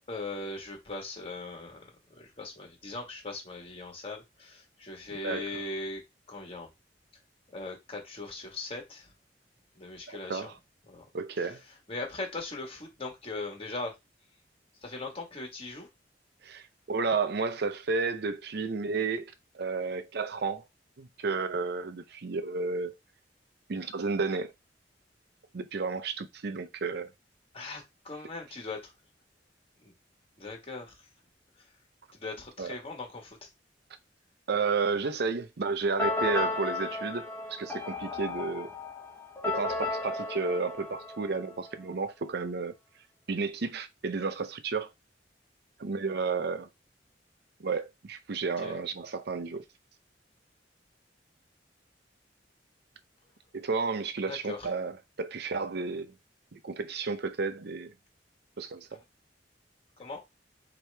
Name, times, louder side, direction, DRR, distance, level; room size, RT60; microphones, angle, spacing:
voice 1, 0.1-1.9 2.1-6.0 6.3-6.7 7.5-9.1 9.7-10.5 10.9-11.0 11.9-13.9 14.8-15.9 27.5-28.9 29.8-29.9 30.4-31.0 32.1-33.4 48.6-48.8 54.2-54.6 60.0-60.2, left 2 dB, 30° left, 1.5 m, -39 dB
voice 2, 10.1-10.5 11.1-11.6 16.4-20.7 21.0-22.9 23.7-24.5 25.5-27.1 32.6-32.8 34.5-38.7 39.5-42.7 43.3-44.9 45.8-46.7 47.6-49.6 53.5-56.1 56.5-57.9 58.6-59.0, right 4 dB, 65° right, 0.6 m, -32 dB
sound 1, 36.0-41.7, left 3 dB, 10° left, 1.1 m, -34 dB
4.7 x 2.9 x 3.3 m
head